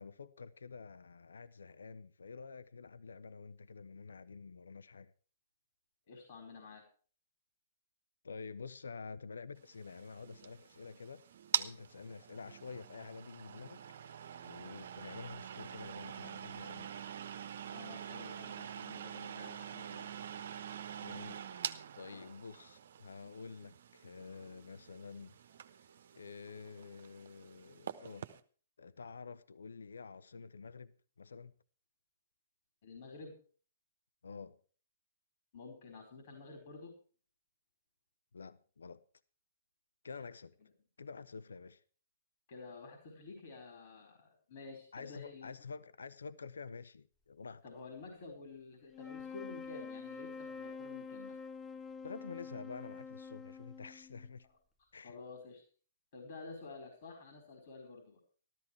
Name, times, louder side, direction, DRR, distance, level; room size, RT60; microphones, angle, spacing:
voice 1, 0.0-5.1 8.2-11.2 11.5-14.2 14.4-16.9 21.0-21.4 22.0-25.4 26.1-28.3 28.8-31.5 34.2-34.6 38.3-39.0 40.0-40.6 41.0-41.8 44.9-47.6 52.0-54.5 54.9-55.2, left 4 dB, 75° left, 0.7 m, -49 dB
voice 2, 6.1-6.8 17.7-20.0 22.1-22.3 32.8-33.4 35.5-36.9 42.5-45.6 47.6-51.3 55.0-55.6 56.1-58.2, left 4 dB, 55° left, 4.5 m, -50 dB
sound 1, 9.7-28.4, right 8 dB, 60° right, 1.1 m, -45 dB
sound 2, 48.9-54.3, left 5 dB, 10° left, 0.8 m, -47 dB
13.5 x 13.5 x 4.6 m
figure-of-eight pair, 120°, 0 cm